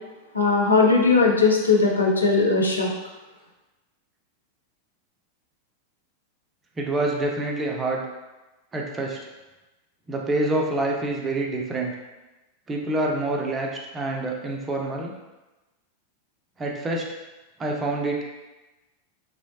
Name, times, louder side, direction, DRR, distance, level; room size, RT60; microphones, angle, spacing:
voice 1, 0.3-2.9, left 4 dB, 80° left, -1 dB, 0.4 m, -19 dB
voice 2, 6.8-8.1 8.7-9.2 10.1-11.9 12.7-15.1 16.6-17.1 17.6-18.3, right 2 dB, 20° right, -1 dB, 0.5 m, -26 dB
3.0 x 2.7 x 2.7 m, 1.1 s
figure-of-eight pair, 90°, 0 cm